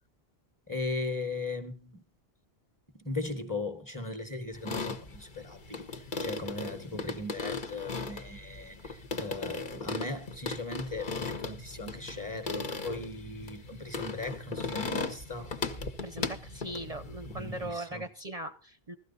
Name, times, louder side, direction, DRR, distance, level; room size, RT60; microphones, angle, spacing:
voice 1, 0.7-2.0 2.9-15.5 17.3-18.1, left 2 dB, 20° left, 1.3 m, -38 dB
sound 1, 4.5-17.7, left 3 dB, 50° left, 1.3 m, -37 dB
voice 2, 16.0-18.9, right 1 dB, 40° right, 0.8 m, -39 dB
16.0 x 13.0 x 4.0 m
omnidirectional pair, 1.0 m